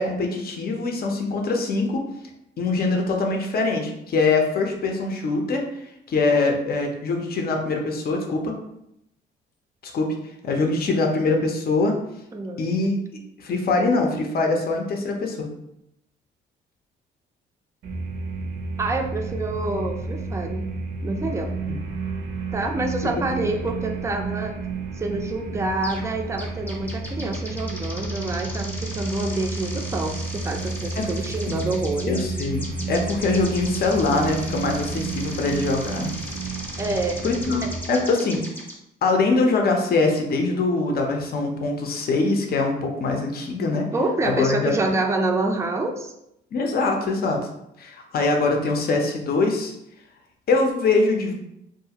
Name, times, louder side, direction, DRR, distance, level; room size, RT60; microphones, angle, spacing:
voice 1, 0.0-2.0 2.6-8.6 9.9-10.1 10.4-12.0 12.6-13.0 13.4-15.5 21.7-21.8 30.9-31.1 31.5-31.7 32.1-36.1 37.2-38.4 39.0-43.9 44.2-44.7 46.5-47.4 47.8-49.7 50.5-51.3, left 3 dB, 50° left, 2 dB, 0.6 m, -23 dB
voice 2, 12.3-12.7 18.8-20.7 21.0-21.5 22.5-24.5 25.0-32.2 36.8-37.7 43.9-46.1, right 2 dB, 15° right, 3 dB, 0.4 m, -27 dB
sound 1, 17.8-37.8, right 4 dB, 80° right, 0.6 m, -31 dB
sound 2, 25.8-26.1 26.4-38.7, left 1 dB, 10° left, 0.7 m, -38 dB
2.6 x 2.4 x 2.8 m, 0.81 s
cardioid pair, 90°, 20 cm